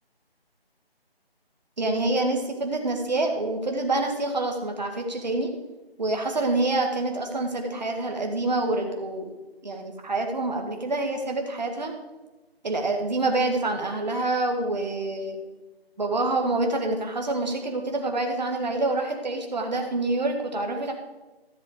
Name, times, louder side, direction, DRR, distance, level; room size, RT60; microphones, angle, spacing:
voice 1, 1.8-5.5 6.0-9.3 9.6-11.9 12.6-15.4 16.0-20.9, right 2 dB, 45° right, 3 dB, 1.7 m, -27 dB
13.5 x 7.0 x 5.0 m, 1.1 s
figure-of-eight pair, 160°, 31 cm